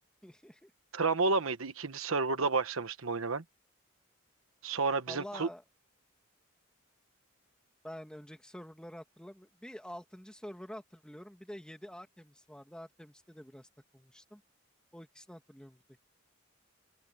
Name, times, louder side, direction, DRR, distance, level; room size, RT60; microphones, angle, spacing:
voice 1, 0.2-0.7 5.1-5.6 7.8-14.4 14.9-16.0, equal, 5° left, 2.1 m, -48 dB
voice 2, 0.9-3.4 4.6-5.5, right 4 dB, 75° right, 1.2 m, -30 dB
open air
head